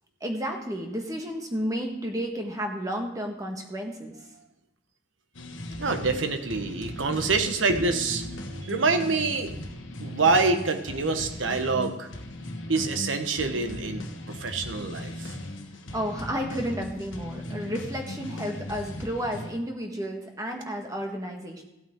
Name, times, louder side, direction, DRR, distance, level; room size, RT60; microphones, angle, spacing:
voice 1, 0.2-4.2 15.9-21.6, equal, 20° right, 2 dB, 1.5 m, -32 dB
sound 1, 5.3-19.5, left 1 dB, 85° left, 1.2 m, -38 dB
voice 2, 5.8-9.6 10.0-12.1 12.7-15.3, right 3 dB, 85° right, 7 dB, 1.1 m, -26 dB
15.5 x 8.5 x 3.7 m, 0.92 s
head